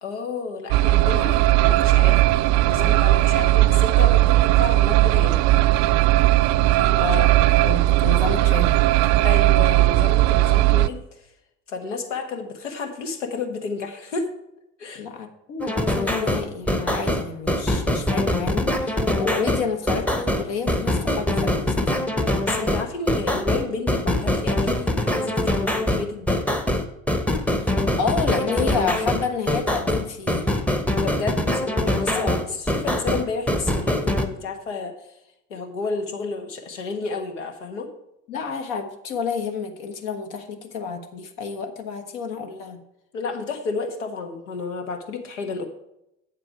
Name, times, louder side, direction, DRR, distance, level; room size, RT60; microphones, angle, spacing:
voice 1, 0.0-2.2 2.6-5.4 6.8-7.1 9.2-11.3 11.7-14.3 14.8-15.0 22.4-26.4 31.0-34.9 35.5-37.9 43.1-45.7, left 4 dB, 75° left, 4 dB, 1.5 m, -31 dB
sound 1, 0.7-10.9, right 16 dB, 45° right, 0.5 m, -17 dB
voice 2, 7.0-8.8 14.9-22.1 27.6-30.5 32.1-32.5 38.3-42.8, left 5 dB, 55° left, 4 dB, 1.4 m, -30 dB
sound 2, 15.6-34.3, left 1 dB, 5° left, 0.9 m, -23 dB
8.6 x 7.5 x 4.7 m, 0.84 s
figure-of-eight pair, 65°, 37 cm